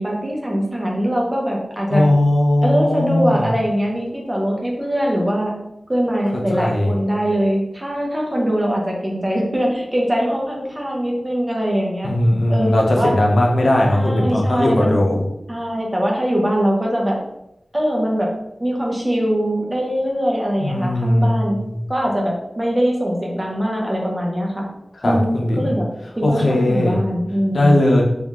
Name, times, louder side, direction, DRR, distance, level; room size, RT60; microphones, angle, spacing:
voice 1, 0.0-2.1 2.6-5.5 5.9-12.1 12.5-13.1 13.9-15.0 15.5-17.2 17.7-18.3 18.6-21.6 21.9-24.6 25.0-25.8 26.2-27.8, equal, 20° right, -2 dB, 1.3 m, -22 dB
voice 2, 1.9-3.5 6.5-6.9 12.0-15.2 20.6-21.6 25.0-25.7 26.2-27.0 27.5-28.0, left 1 dB, 75° left, 0 dB, 1.0 m, -18 dB
4.3 x 2.9 x 3.6 m, 0.83 s
wide cardioid pair, 65°, 0 cm